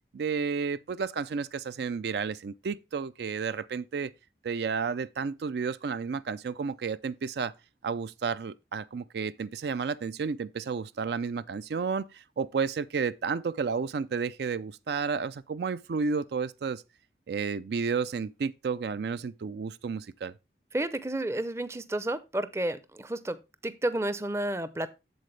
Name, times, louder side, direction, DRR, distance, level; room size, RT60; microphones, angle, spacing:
voice 1, 0.1-4.1 4.4-7.5 7.8-16.8 17.3-20.3, right 5 dB, 70° right, 0.4 m, -32 dB
voice 2, 20.7-23.4 23.6-24.9, right 1 dB, 15° right, 0.5 m, -31 dB
8.0 x 7.4 x 3.2 m
head